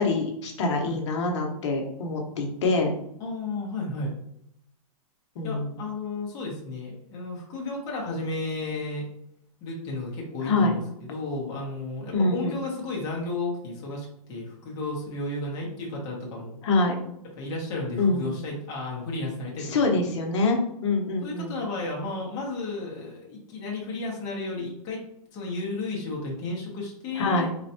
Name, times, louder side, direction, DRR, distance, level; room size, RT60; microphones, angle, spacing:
voice 1, 0.0-2.9 5.4-5.7 10.4-10.8 12.1-12.6 16.6-17.0 18.0-18.4 19.7-21.5 27.2-27.5, left 3 dB, 50° left, 2 dB, 0.8 m, -25 dB
voice 2, 3.2-4.1 5.4-9.1 9.6-16.6 17.4-20.3 21.2-25.0 25.3-27.5, left 2 dB, 20° left, -3 dB, 0.7 m, -33 dB
3.9 x 2.1 x 2.7 m, 0.76 s
hypercardioid pair, 160°, 19 cm